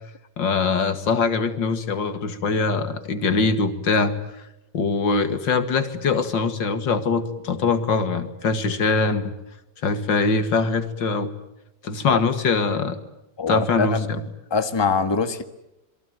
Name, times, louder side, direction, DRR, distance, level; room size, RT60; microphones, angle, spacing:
voice 1, 0.4-4.1 4.7-9.3 9.8-11.3 11.8-13.0 13.5-14.2, left 4 dB, 80° left, 9 dB, 2.6 m, -22 dB
voice 2, 13.4-14.1 14.5-15.4, left 4 dB, 15° left, 9 dB, 1.4 m, -23 dB
27.5 x 23.0 x 9.3 m, 0.87 s
omnidirectional pair, 2.0 m